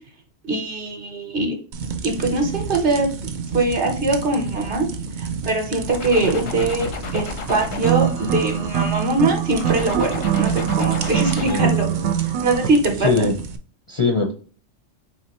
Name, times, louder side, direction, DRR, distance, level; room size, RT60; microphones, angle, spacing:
voice 1, 0.5-1.6 2.0-3.1 3.5-4.9 5.2-11.9 12.2-13.3, right 2 dB, 50° right, 3 dB, 1.0 m, -22 dB
sound 1, 1.7-13.6, right 5 dB, 65° right, 0.4 m, -32 dB
sound 2, 5.9-9.1 9.5-11.8, left 4 dB, 85° left, 1.1 m, -33 dB
sound 3, 7.7-12.7, right 10 dB, 90° right, 1.0 m, -23 dB
voice 2, 11.5-12.1 13.0-13.3 13.9-14.3, left 3 dB, 40° left, 2 dB, 0.4 m, -21 dB
4.2 x 3.1 x 2.9 m, 0.39 s
omnidirectional pair, 1.3 m